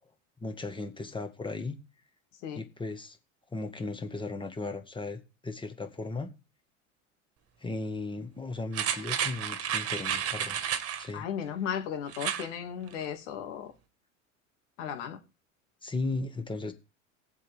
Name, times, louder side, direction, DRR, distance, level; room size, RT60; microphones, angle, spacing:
voice 1, 0.4-1.8 2.6-3.2 3.5-6.3 7.6-10.6 11.0-11.3 15.8-16.7, left 3 dB, 10° left, 1.9 m, -36 dB
sound 1, 8.7-11.1 12.1-12.5 12.9-13.0, right 9 dB, 35° right, 1.8 m, -31 dB
voice 2, 11.1-13.7 14.8-15.2, left 8 dB, 70° left, 2.5 m, -35 dB
18.5 x 7.5 x 3.6 m
hypercardioid pair, 85°, 38 cm